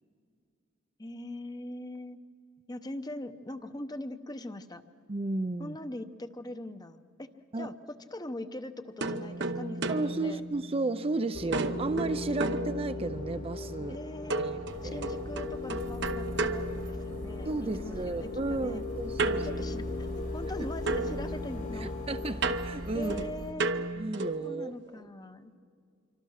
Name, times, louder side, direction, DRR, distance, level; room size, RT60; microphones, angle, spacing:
voice 1, 1.0-2.2 2.7-4.8 5.6-7.3 7.6-10.4 13.9-14.6 14.8-18.8 19.4-19.9 20.2-22.0 22.9-23.7 24.4-25.6, left 1 dB, 20° left, 10 dB, 0.8 m, -41 dB
voice 2, 5.1-5.8 7.5-7.7 9.9-14.0 14.4-15.1 17.4-19.4 21.8-23.2 24.0-25.0, right 3 dB, 30° right, 10 dB, 0.5 m, -33 dB
sound 1, 9.0-11.1 11.5-13.4 14.3-17.5 19.2-20.6 20.9-24.5, right 2 dB, 60° right, 0.9 m, -34 dB
sound 2, 11.3-23.3, left 3 dB, 40° left, 1.5 m, -38 dB
sound 3, 14.7-23.5, equal, 80° right, 3.0 m, -45 dB
26.5 x 24.5 x 6.5 m, 2.4 s
head